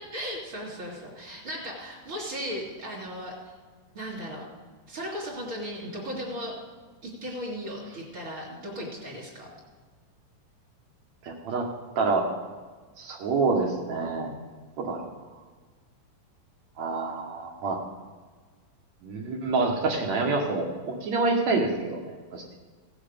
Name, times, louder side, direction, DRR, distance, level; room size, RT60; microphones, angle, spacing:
voice 1, 0.0-3.5 3.9-4.5 4.9-6.6 7.0-9.5, equal, 40° right, -4 dB, 2.7 m, -36 dB
voice 2, 11.2-11.7 12.0-12.3 13.0-14.3 14.8-15.1 16.8-17.8 19.0-22.6, right 3 dB, 65° right, 1 dB, 2.0 m, -27 dB
16.5 x 7.9 x 5.0 m, 1.4 s
omnidirectional pair, 4.2 m